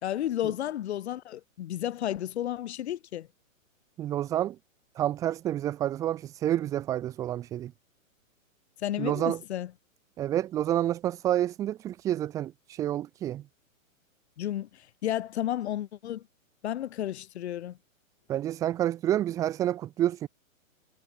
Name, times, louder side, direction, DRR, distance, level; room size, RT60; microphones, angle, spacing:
voice 1, 0.0-3.3 8.8-9.7 14.4-16.2 16.6-17.8, left 12 dB, 50° left, 3.4 m, -32 dB
voice 2, 4.0-4.6 5.0-7.7 9.0-9.4 10.2-13.4 18.3-20.3, right 12 dB, 10° right, 0.7 m, -29 dB
hypercardioid pair, 170°, 41 cm